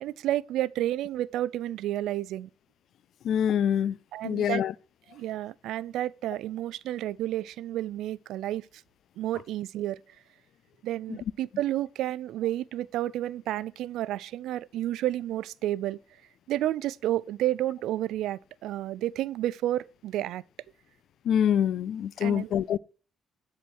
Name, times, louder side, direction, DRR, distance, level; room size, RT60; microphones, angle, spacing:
voice 1, 0.0-2.5 4.1-4.6 5.1-8.7 9.2-10.0 10.8-16.0 16.5-20.4 22.2-22.5, right 13 dB, 85° right, 0.3 m, -31 dB
voice 2, 3.2-4.0 4.2-4.7 21.3-22.8, left 9 dB, 70° left, 0.4 m, -25 dB
10.0 x 4.5 x 6.3 m
cardioid pair, 90°, 0 cm